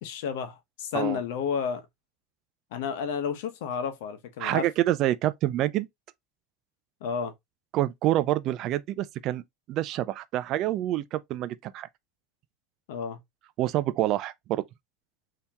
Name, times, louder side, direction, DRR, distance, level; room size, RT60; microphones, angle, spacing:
voice 1, 0.0-1.8 2.7-4.7 7.0-7.3 12.9-13.2, left 7 dB, 80° left, 0.9 m, -31 dB
voice 2, 4.4-5.9 7.7-9.4 9.7-11.9 13.6-14.6, right 14 dB, 45° right, 0.4 m, -27 dB
3.5 x 2.8 x 2.8 m
supercardioid pair, 140°, 0 cm